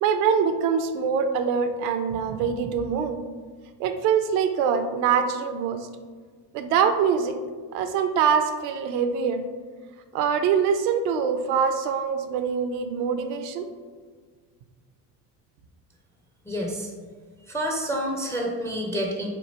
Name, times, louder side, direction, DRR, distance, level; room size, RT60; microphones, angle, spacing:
voice 1, 0.0-3.2 3.8-5.9 6.5-7.3 7.7-9.4 10.1-13.7, right 6 dB, 80° right, 8 dB, 0.6 m, -24 dB
voice 2, 16.5-16.9 17.5-19.3, equal, 5° left, 0 dB, 0.3 m, -28 dB
3.2 x 2.3 x 4.0 m, 1.5 s
hypercardioid pair, 75°, 50 cm